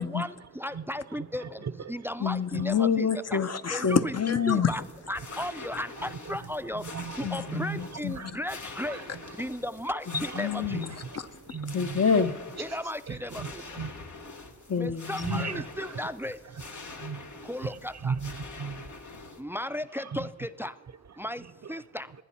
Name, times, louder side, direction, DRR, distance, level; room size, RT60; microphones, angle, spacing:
voice 1, 0.0-3.4 3.7-4.1 4.5-4.8 5.1-6.9 7.2-10.9 12.6-13.6 14.7-16.4 17.5-18.2 19.4-20.8 21.2-22.1, left 1 dB, 10° right, 0.3 m, -35 dB
voice 2, 1.4-1.7 2.5-2.6 6.0-6.4 6.7-8.3 8.9-9.0 10.7-12.0 13.1-14.4 14.8-14.9 15.2-16.0 17.0-17.2 18.0-19.2 20.1-20.3, right 6 dB, 65° right, 0.5 m, -37 dB
voice 3, 2.2-4.7 7.2-8.3 10.1-11.0 11.5-12.4 14.7-15.6, left 6 dB, 60° left, 0.6 m, -27 dB
sound 1, 4.8-19.4, left 3 dB, 85° left, 1.1 m, -44 dB
20.5 x 10.0 x 4.2 m
cardioid pair, 45°, 29 cm